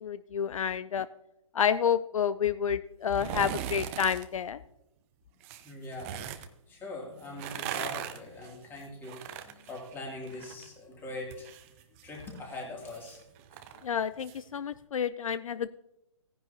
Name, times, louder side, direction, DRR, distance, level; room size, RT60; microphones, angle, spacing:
voice 1, 0.0-1.1 1.5-4.6 13.8-15.7, left 8 dB, 70° left, 15 dB, 0.5 m, -29 dB
sound 1, 3.0-4.3 5.4-6.5 7.2-10.7 11.0-14.4 14.8-14.9, right 10 dB, 25° right, 0.6 m, -40 dB
voice 2, 5.6-6.2 6.7-11.5 11.9-13.2 13.7-13.8, left 2 dB, 10° left, -1 dB, 2.7 m, -42 dB
17.0 x 10.0 x 2.8 m, 0.82 s
hypercardioid pair, 145°, 18 cm